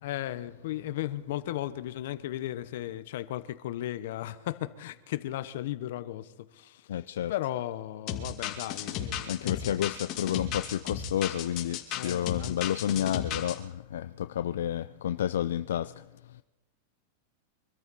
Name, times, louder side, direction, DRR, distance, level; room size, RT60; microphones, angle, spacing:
voice 1, 0.0-6.9 7.3-9.9 11.9-13.2, left 14 dB, 70° left, 1.0 m, -36 dB
voice 2, 6.9-7.3 9.2-16.4, left 10 dB, 85° left, 0.4 m, -31 dB
sound 1, 8.1-13.5, left 9 dB, 40° left, 2.5 m, -34 dB
24.5 x 13.5 x 4.2 m
supercardioid pair, 140°, 0 cm